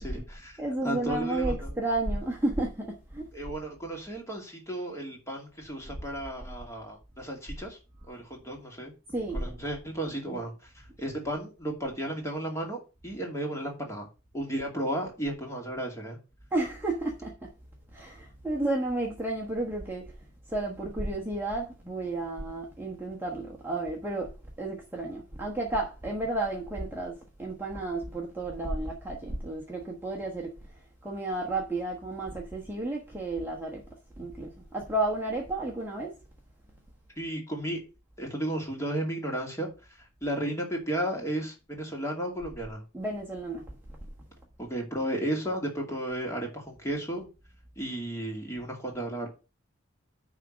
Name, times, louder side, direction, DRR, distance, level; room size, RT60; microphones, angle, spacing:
voice 1, 0.0-0.6 0.8-1.7 3.3-7.8 8.1-8.9 9.3-14.1 14.3-16.2 37.2-37.8 38.2-39.7 40.2-42.8 44.6-47.3 47.8-49.3, right 1 dB, 15° left, 2.5 m, -34 dB
voice 2, 0.6-3.3 9.1-9.6 10.3-10.4 16.5-17.5 17.9-20.1 20.5-33.8 34.2-36.2 42.9-43.7, right 2 dB, 10° right, 1.2 m, -32 dB
10.0 x 3.7 x 6.2 m
head